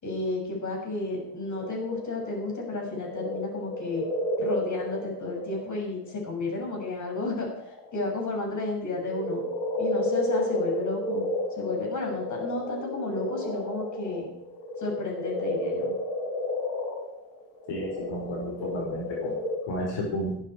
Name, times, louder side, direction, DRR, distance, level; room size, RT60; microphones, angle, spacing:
voice 1, 0.0-4.0 4.4-9.4 9.8-11.3 11.6-14.3 14.8-15.9, left 2 dB, 35° left, 0 dB, 6.9 m, -32 dB
sound 1, 1.1-6.2 6.7-8.4 8.8-19.5, left 1 dB, 80° left, 6.8 m, -32 dB
voice 2, 17.7-19.3 19.7-20.3, equal, 65° left, -1 dB, 5.0 m, -32 dB
16.0 x 13.0 x 4.7 m, 0.74 s
cardioid pair, 115°, 48 cm